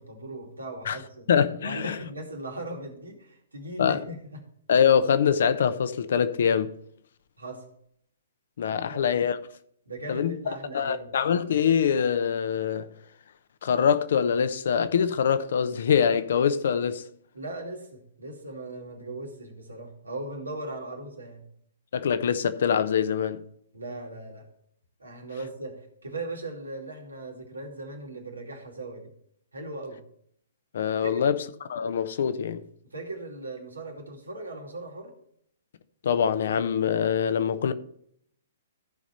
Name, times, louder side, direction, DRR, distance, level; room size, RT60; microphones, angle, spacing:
voice 1, 0.0-1.3 1.6-4.4 7.4-7.6 8.7-9.1 9.9-11.2 17.3-21.5 23.7-24.5 25.0-29.1 29.5-30.0 31.0-31.1 32.8-35.1, right 2 dB, 90° right, 2.5 m, -38 dB
voice 2, 1.3-2.0 3.8-4.0 4.7-6.7 8.6-9.4 10.1-10.4 10.7-12.9 13.6-17.0 21.9-23.4 30.7-31.4 31.7-32.6 36.0-37.7, left 7 dB, 60° left, 0.8 m, -24 dB
14.0 x 5.0 x 4.3 m
figure-of-eight pair, 125°, 0 cm